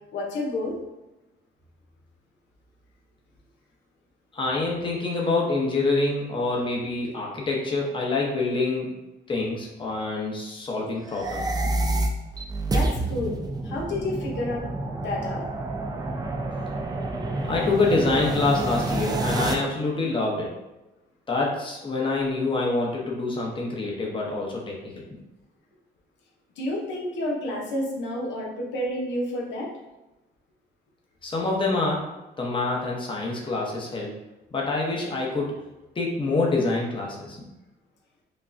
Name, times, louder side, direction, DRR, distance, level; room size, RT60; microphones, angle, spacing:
voice 1, 0.1-0.8 12.7-13.4 13.6-14.6 15.0-15.4 26.6-29.7, left 1 dB, 85° left, -2 dB, 0.9 m, -30 dB
voice 2, 4.3-8.9 9.3-11.7 17.4-20.5 21.3-25.0 31.2-32.1 32.4-34.1 34.5-35.6 35.9-37.4, left 3 dB, 25° left, -2 dB, 0.9 m, -26 dB
sound 1, 11.0-19.5, right 2 dB, 20° right, 0.5 m, -28 dB
5.2 x 2.3 x 2.6 m, 1.0 s
cardioid pair, 110°, 18 cm